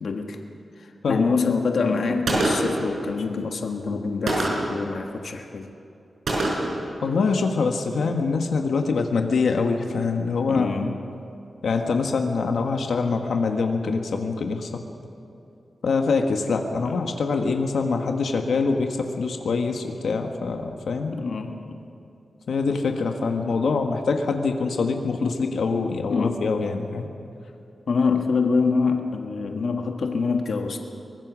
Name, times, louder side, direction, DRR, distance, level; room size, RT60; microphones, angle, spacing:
voice 1, 0.0-0.4 0.8-5.7 10.5-11.0 16.8-17.0 21.1-21.8 26.1-26.4 27.9-30.8, left 4 dB, 65° left, 3 dB, 1.5 m, -25 dB
voice 2, 1.0-1.6 7.0-10.9 11.6-14.8 15.8-21.1 22.5-27.1, left 4 dB, 90° left, 4 dB, 1.5 m, -24 dB
Gunshot gunfire, 2.3-2.9 4.3-4.8 6.3-6.8, right 2 dB, 75° right, 5.1 m, -24 dB
23.5 x 20.5 x 6.2 m, 2.7 s
wide cardioid pair, 150°, 0 cm